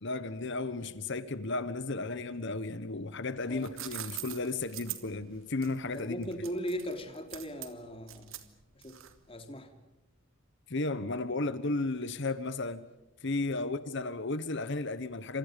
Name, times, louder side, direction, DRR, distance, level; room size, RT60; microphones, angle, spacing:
voice 1, 0.0-6.2 10.7-12.8 13.2-15.4, left 2 dB, 55° left, 1.2 m, -34 dB
sound 1, 3.4-9.3, right 13 dB, 70° right, 2.3 m, -43 dB
voice 2, 3.5-3.9 5.9-8.4 8.7-9.0 9.3-9.7 13.5-13.7, equal, 25° left, 3.2 m, -39 dB
29.0 x 27.0 x 5.3 m
head